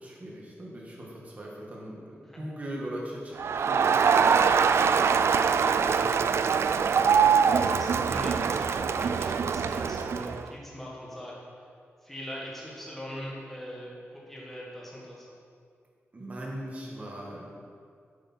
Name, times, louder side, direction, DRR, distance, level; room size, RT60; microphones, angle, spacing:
voice 1, 0.0-4.5 5.2-6.3 16.1-17.5, right 1 dB, 35° right, -3 dB, 1.8 m, -40 dB
Crowd, 3.4-10.4, right 6 dB, 70° right, 0.3 m, -23 dB
voice 2, 7.4-11.3 12.0-15.3, equal, 5° left, -5 dB, 1.8 m, -41 dB
8.9 x 7.8 x 4.5 m, 2.2 s
wide cardioid pair, 175°, 5 cm